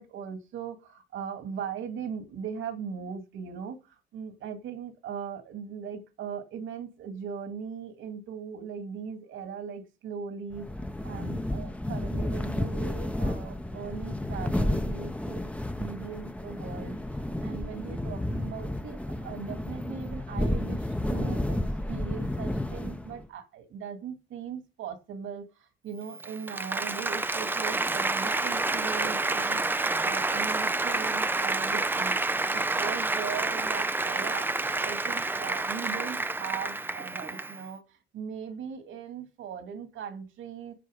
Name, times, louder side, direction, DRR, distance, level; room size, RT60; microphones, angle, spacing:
voice 1, 0.0-10.7 11.0-15.5 15.8-17.0 17.4-32.1 32.5-40.7, right 7 dB, 80° right, 2.5 m, -39 dB
sound 1, 10.5-23.3, left 1 dB, 5° left, 0.8 m, -32 dB
Applause, 26.1-37.6, right 2 dB, 10° right, 0.4 m, -29 dB
10.0 x 4.6 x 8.0 m
cardioid pair, 90°, 20 cm